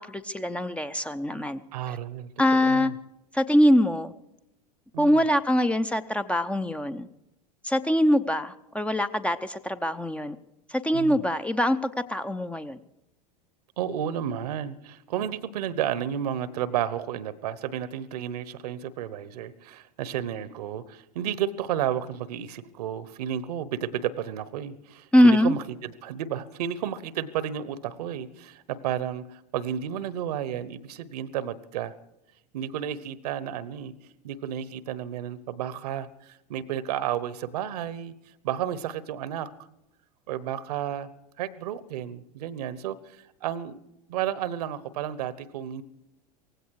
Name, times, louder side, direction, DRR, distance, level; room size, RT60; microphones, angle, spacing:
voice 1, 0.1-1.6 2.4-2.9 3.3-4.1 5.0-7.1 7.6-10.4 10.7-12.8 25.1-25.6, left 1 dB, 5° left, 11 dB, 0.7 m, -23 dB
voice 2, 1.7-2.3 2.6-2.9 4.9-5.2 10.9-11.2 13.8-31.9 32.5-33.9 34.2-38.1 38.4-39.5 40.3-41.1 41.4-43.8 44.1-45.8, right 10 dB, 70° right, 18 dB, 1.1 m, -32 dB
18.0 x 16.0 x 4.8 m, 0.88 s
hypercardioid pair, 85°, 21 cm